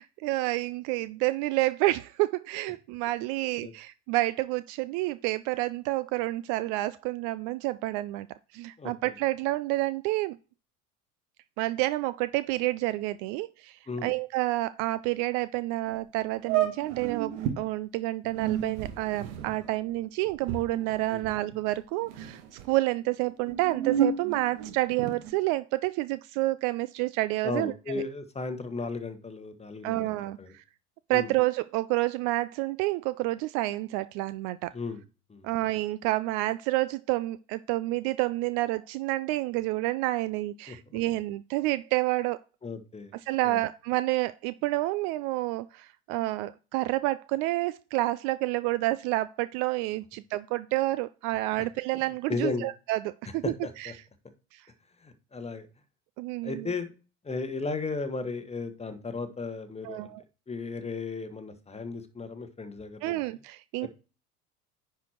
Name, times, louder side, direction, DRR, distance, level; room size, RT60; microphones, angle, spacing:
voice 1, 0.0-8.3 8.5-10.4 11.6-22.4 22.7-28.0 29.8-30.6 31.1-34.7 35.4-42.4 43.3-53.9 54.5-54.6 56.2-56.7 59.8-60.2 63.0-63.9, right 18 dB, 45° right, 16 dB, 0.5 m, -29 dB
voice 2, 8.8-9.1 13.9-14.1 21.1-21.3 27.4-30.1 30.4-30.5 31.1-31.3 34.7-35.0 35.3-35.5 40.7-41.0 42.6-43.1 43.4-43.6 51.6-51.7 52.3-52.6 53.4-53.9 55.0-55.7 56.4-56.9 57.2-60.1 60.5-63.2 63.8-63.9, left 4 dB, 15° left, 8 dB, 1.4 m, -35 dB
sound 1, 15.9-16.0 16.4-17.6 18.2-21.7 22.0-22.7 23.3-25.3, right 9 dB, 60° right, 1.7 m, -31 dB
10.0 x 4.6 x 4.5 m, 0.34 s
figure-of-eight pair, 70°, 43 cm